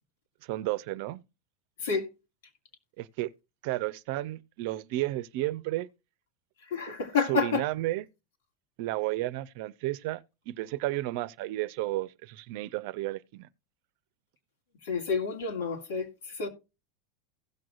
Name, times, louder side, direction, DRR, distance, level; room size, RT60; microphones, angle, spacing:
voice 1, 0.4-1.2 3.0-3.3 3.6-5.9 7.3-8.0 8.8-13.5, right 17 dB, 65° right, 0.6 m, -32 dB
voice 2, 6.6-7.6 14.8-16.5, left 5 dB, 80° left, 2.6 m, -29 dB
16.0 x 6.2 x 2.5 m
hypercardioid pair, 110°, 0 cm